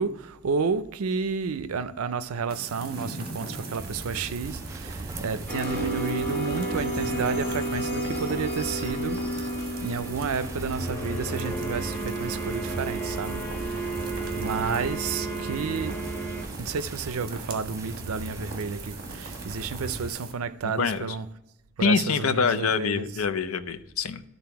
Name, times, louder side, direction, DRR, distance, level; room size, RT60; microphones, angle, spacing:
voice 1, 0.0-9.2 9.8-14.0 14.4-16.1 16.6-21.3 21.8-23.1, right 5 dB, 80° right, 0.5 m, -31 dB
sound 1, 2.5-20.3, right 3 dB, 45° right, 1.4 m, -41 dB
sound 2, 3.8-20.1, right 2 dB, 15° right, 0.3 m, -39 dB
sound 3, 5.5-16.4, right 1 dB, 10° left, 1.5 m, -32 dB
voice 2, 21.8-24.2, left 5 dB, 70° left, 0.5 m, -25 dB
11.5 x 4.0 x 5.8 m
head